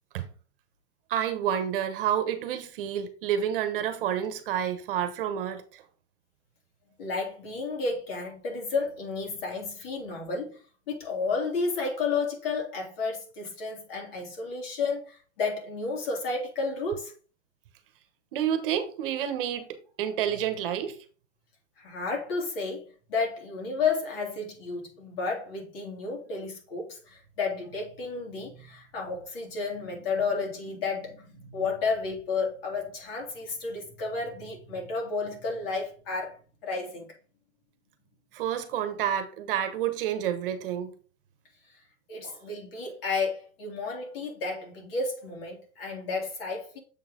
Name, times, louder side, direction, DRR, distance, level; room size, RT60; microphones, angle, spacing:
voice 1, 1.1-5.8 18.3-21.0 38.3-40.9 42.2-42.4, right 9 dB, 50° right, 1.1 m, -29 dB
voice 2, 7.0-10.6 10.9-17.1 21.8-37.1 41.7-41.8 42.1-46.8, left 4 dB, 55° left, 3.2 m, -32 dB
7.2 x 4.7 x 3.7 m
supercardioid pair, 160°, 35 cm